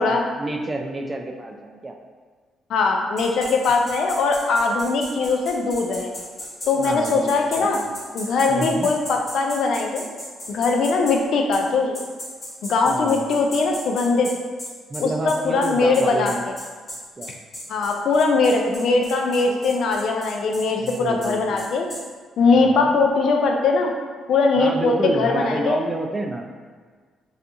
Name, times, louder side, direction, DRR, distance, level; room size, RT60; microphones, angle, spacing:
voice 1, 0.0-1.9 6.8-7.9 8.5-8.9 12.9-13.3 14.9-16.4 17.2-17.3 20.8-21.7 22.5-22.9 24.6-26.5, right 2 dB, 25° right, 2 dB, 0.3 m, -29 dB
voice 2, 2.7-6.1 6.7-7.8 8.1-10.1 10.5-11.9 12.7-14.3 15.0-16.3 17.7-21.9 22.4-23.9 24.3-25.8, left 3 dB, 70° left, 2 dB, 0.3 m, -20 dB
sound 1, 3.2-11.2 11.5-11.6 11.9-22.0, left 1 dB, 40° left, 1.0 m, -36 dB
2.4 x 2.3 x 2.6 m, 1.5 s
cardioid pair, 90°, 0 cm